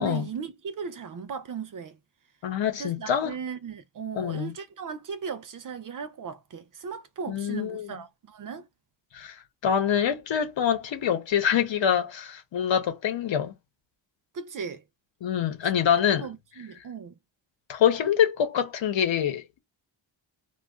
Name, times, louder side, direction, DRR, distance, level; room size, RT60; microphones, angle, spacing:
voice 1, 0.0-2.0 2.8-8.7 14.3-14.8 16.2-17.2, right 6 dB, 45° right, 0.4 m, -37 dB
voice 2, 2.4-3.3 4.1-4.5 7.3-7.9 9.1-9.3 9.6-13.5 15.2-16.3 17.7-19.6, left 8 dB, 70° left, 1.0 m, -25 dB
2.4 x 2.3 x 3.5 m
wide cardioid pair, 150°, 47 cm